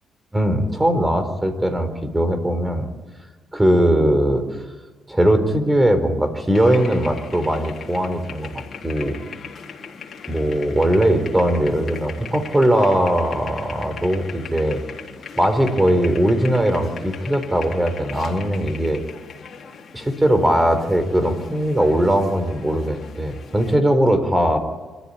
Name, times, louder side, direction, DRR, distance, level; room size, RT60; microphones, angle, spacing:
voice 1, 0.3-2.9 3.5-4.4 5.1-9.2 10.3-14.8 15.4-19.0 19.9-24.6, right 1 dB, 15° right, 9 dB, 4.3 m, -20 dB
sound 1, 6.5-23.8, left 6 dB, 50° left, 3.7 m, -39 dB
26.0 x 14.5 x 10.0 m, 1.3 s
cardioid pair, 90°, 0 cm